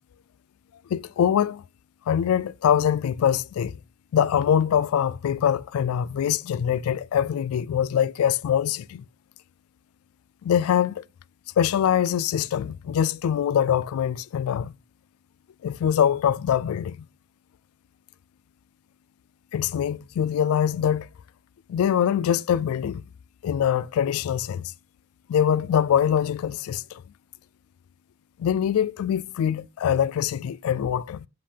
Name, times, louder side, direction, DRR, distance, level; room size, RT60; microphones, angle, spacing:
voice 1, 0.9-1.6 2.1-3.8 4.1-9.0 10.4-11.0 11.6-14.7 15.6-17.1 19.5-21.1 21.7-23.0 23.4-24.7 25.3-27.0 28.4-31.3, left 9 dB, 80° left, 0.3 m, -23 dB
7.6 x 3.4 x 5.0 m
head